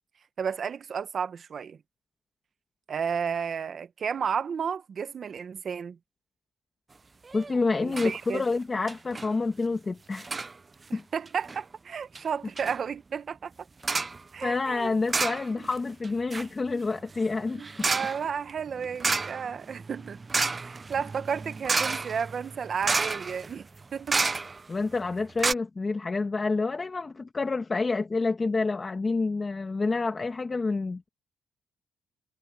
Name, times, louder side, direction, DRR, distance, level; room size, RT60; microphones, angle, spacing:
voice 1, 0.4-1.8 2.9-6.0 7.8-8.4 10.9-13.5 14.3-14.9 17.5-20.2 20.5-24.3, right 7 dB, 50° right, 1.3 m, -32 dB
voice 2, 7.3-10.4 10.9-11.0 14.4-17.9 24.7-31.1, left 3 dB, 30° left, 1.9 m, -28 dB
sound 1, 7.3-7.6 7.9-8.1 8.4-8.5 8.9-9.3 10.1-10.5 11.3-11.6 12.1-12.2 12.6-12.8 13.8-14.2 15.1-15.8 16.0-24.8 25.1-25.2 25.4-25.5, right 4 dB, 30° right, 0.6 m, -31 dB
cardioid pair, 90°, 0 cm